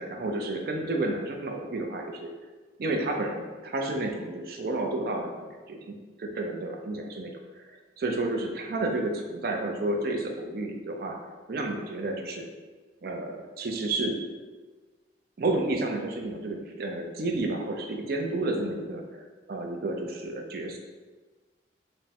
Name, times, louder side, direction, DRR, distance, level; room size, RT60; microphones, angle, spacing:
voice 1, 0.0-2.3 2.8-7.3 8.0-11.2 11.5-12.4 13.0-14.2 15.4-20.8, right 2 dB, 55° right, 2 dB, 0.5 m, -31 dB
3.4 x 2.1 x 4.2 m, 1.3 s
head